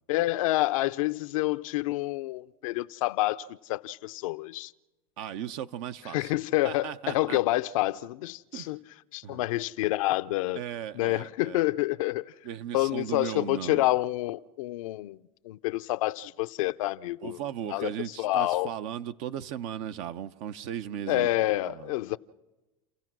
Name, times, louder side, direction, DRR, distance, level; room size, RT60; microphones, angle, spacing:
voice 1, 0.1-4.7 6.1-8.8 9.1-10.6 10.9-12.3 12.7-15.2 15.4-17.4 17.7-17.9 18.2-18.7 21.1-22.2, left 17 dB, 75° left, 0.6 m, -28 dB
voice 2, 5.2-6.3 6.6-7.6 8.5-8.7 9.2-9.5 10.5-11.6 12.4-13.9 17.2-21.3 21.7-21.9, right 10 dB, 60° right, 0.9 m, -37 dB
29.5 x 16.0 x 6.1 m
hypercardioid pair, 100°, 18 cm